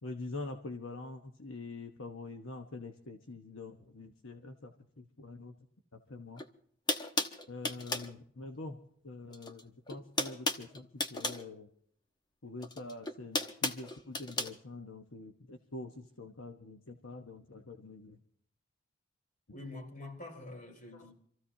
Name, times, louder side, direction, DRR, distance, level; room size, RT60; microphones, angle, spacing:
voice 1, 0.0-5.5 5.9-6.4 7.5-8.8 9.0-11.7 12.4-18.2 20.9-21.1, left 2 dB, 70° left, 1.1 m, -45 dB
sound 1, 6.4-6.5 6.9-8.1 9.3-9.6 9.9-11.4 12.6-14.5, left 2 dB, 20° left, 1.1 m, -34 dB
voice 2, 19.5-21.1, left 2 dB, 40° left, 4.2 m, -46 dB
27.0 x 15.0 x 2.8 m
head